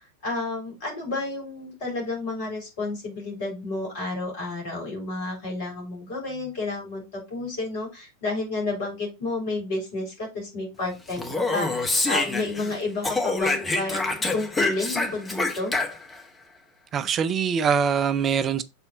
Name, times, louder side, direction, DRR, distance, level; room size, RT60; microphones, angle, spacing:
voice 1, 0.2-15.7, left 2 dB, 50° left, 3.9 m, -31 dB
Speech, 11.1-12.7 13.0-16.2, left 2 dB, 10° left, 1.4 m, -26 dB
voice 2, 16.9-18.6, right 7 dB, 25° right, 0.4 m, -23 dB
6.9 x 4.1 x 4.1 m
figure-of-eight pair, 90°, 0 cm